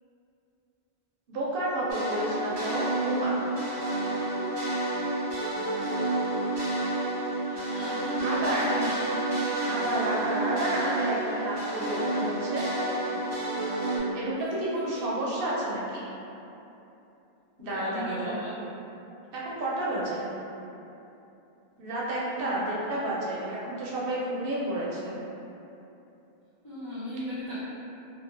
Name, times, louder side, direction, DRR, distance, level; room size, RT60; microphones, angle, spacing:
voice 1, 1.3-3.3 7.5-7.7 8.2-8.7 9.6-12.7 14.1-16.1 17.6-18.4 19.3-20.3 21.8-25.2, right 1 dB, 65° right, -6 dB, 0.7 m, -31 dB
sound 1, 1.9-14.0, right 1 dB, 35° right, 0.4 m, -30 dB
voice 2, 7.5-9.1 14.7-15.0 17.6-18.5 22.3-22.7 26.6-27.6, left 1 dB, 40° left, -12 dB, 0.3 m, -37 dB
2.5 x 2.5 x 2.5 m, 2.9 s
omnidirectional pair, 1.1 m